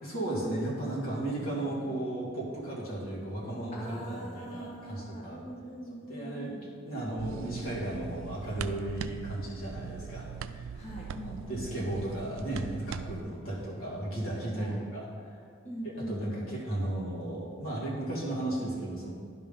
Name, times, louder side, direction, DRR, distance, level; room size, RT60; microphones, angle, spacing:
voice 1, 0.0-5.4 6.1-6.6 6.9-10.7 11.2-15.1 15.8-19.1, right 1 dB, 85° left, -6 dB, 2.2 m, -35 dB
voice 2, 3.7-6.6 10.7-11.7 14.6-14.8 15.6-16.4, equal, 35° left, -4 dB, 1.2 m, -42 dB
sound 1, 7.2-13.2, right 7 dB, 75° right, 0.3 m, -41 dB
11.0 x 3.7 x 5.4 m, 2.2 s
head